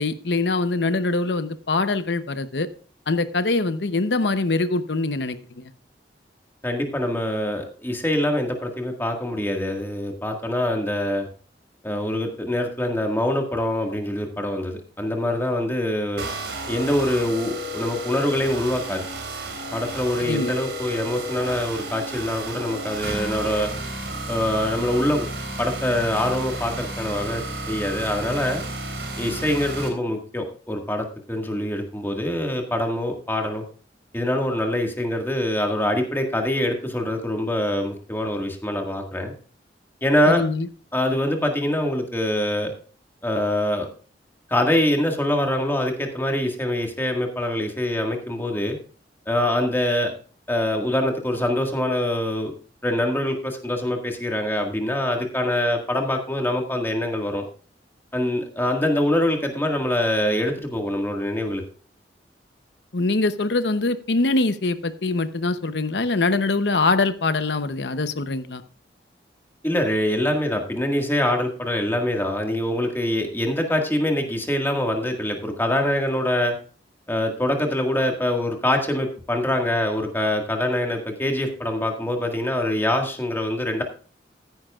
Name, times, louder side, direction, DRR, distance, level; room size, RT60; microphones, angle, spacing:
voice 1, 0.0-2.7 3.1-5.6 20.2-20.5 40.3-40.7 62.9-68.6, left 3 dB, 75° left, 11 dB, 0.8 m, -23 dB
voice 2, 6.6-11.3 11.8-16.2 16.7-19.1 19.7-23.7 24.3-25.3 25.6-28.6 29.2-33.6 34.1-39.3 40.0-40.4 40.9-42.7 43.2-43.9 44.5-48.8 49.3-50.1 50.5-52.5 52.8-57.4 58.1-61.6 69.6-76.6 77.1-83.8, left 1 dB, 15° left, 3 dB, 1.8 m, -24 dB
sound 1, 16.2-29.9, right 1 dB, 80° right, 3.5 m, -32 dB
14.5 x 10.5 x 2.4 m, 0.40 s
head